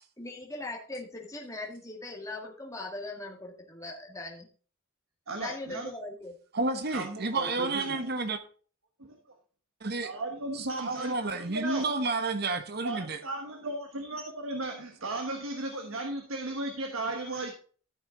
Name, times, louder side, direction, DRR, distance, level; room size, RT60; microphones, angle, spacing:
voice 1, 0.2-4.5 5.4-6.3, left 2 dB, 15° left, 1.8 m, -40 dB
voice 2, 5.3-5.9 6.9-8.1 9.0-9.2 10.0-12.1 12.8-17.5, right 2 dB, 85° right, 1.5 m, -36 dB
voice 3, 6.5-8.4 9.8-10.1 10.6-13.2, right 3 dB, 50° right, 1.0 m, -30 dB
14.0 x 6.1 x 3.8 m
head